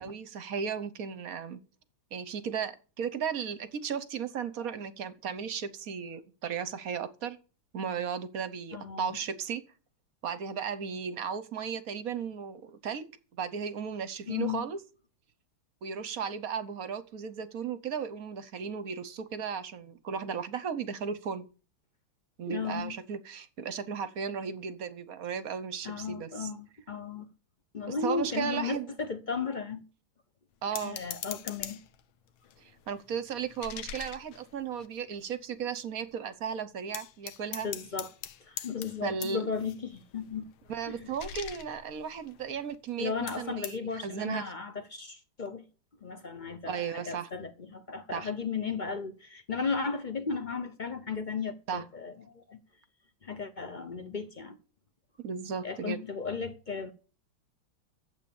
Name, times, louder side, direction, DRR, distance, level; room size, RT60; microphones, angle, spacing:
voice 1, 0.0-1.6 2.1-7.4 7.7-9.6 10.2-13.0 13.4-14.8 15.8-21.5 22.4-26.5 27.9-28.9 30.6-31.0 32.6-37.7 39.0-39.5 40.7-44.5 46.7-47.3 48.1-48.3 51.7-51.8 55.2-56.0, right 7 dB, 55° right, 1.1 m, -35 dB
voice 2, 8.7-9.2 14.3-14.6 22.5-23.0 25.8-27.3 27.7-29.8 30.8-31.8 37.6-38.1 38.4-40.5 40.9-41.1 43.0-45.6 46.0-52.6 53.2-54.6 55.6-56.9, left 5 dB, 55° left, 0.5 m, -35 dB
sound 1, 30.7-32.0 32.4-35.3 35.7-35.8 36.1-36.4 36.9-42.9 43.3-43.8, left 10 dB, 75° left, 1.7 m, -43 dB
12.0 x 8.0 x 7.1 m
omnidirectional pair, 2.3 m